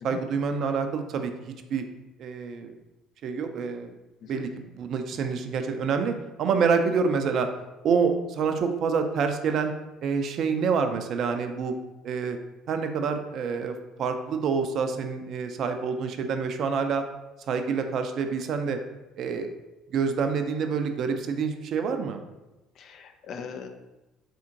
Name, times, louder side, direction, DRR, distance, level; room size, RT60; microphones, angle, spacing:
voice 1, 0.0-1.8 2.2-2.7 3.2-3.9 4.3-7.5 7.8-9.7 10.0-11.7 12.0-12.4 12.7-17.0 17.5-18.8 19.2-19.5 19.9-22.2, right 5 dB, 50° right, 7 dB, 0.4 m, -27 dB
voice 2, 22.8-23.7, left 6 dB, 45° left, 5 dB, 0.4 m, -40 dB
4.2 x 3.6 x 2.7 m, 1.0 s
figure-of-eight pair, 55°, 0 cm